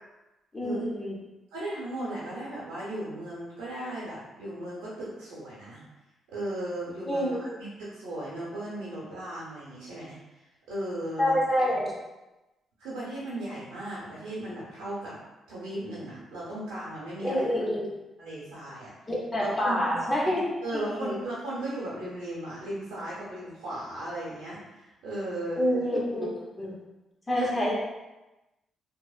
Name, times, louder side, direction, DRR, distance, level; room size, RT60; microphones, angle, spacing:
voice 1, 0.5-1.1 7.1-7.5 11.2-12.0 17.2-17.9 19.1-20.5 20.9-21.2 25.6-26.8 27.3-27.7, equal, 25° left, -4 dB, 0.7 m, -27 dB
voice 2, 1.5-5.8 6.3-10.4 10.7-11.4 12.8-15.2 15.5-17.5 18.2-18.9 19.4-20.0 20.6-25.7 27.3-27.5, right 1 dB, 85° right, -8 dB, 0.8 m, -36 dB
2.7 x 2.0 x 2.3 m, 1.0 s
supercardioid pair, 70°, 0 cm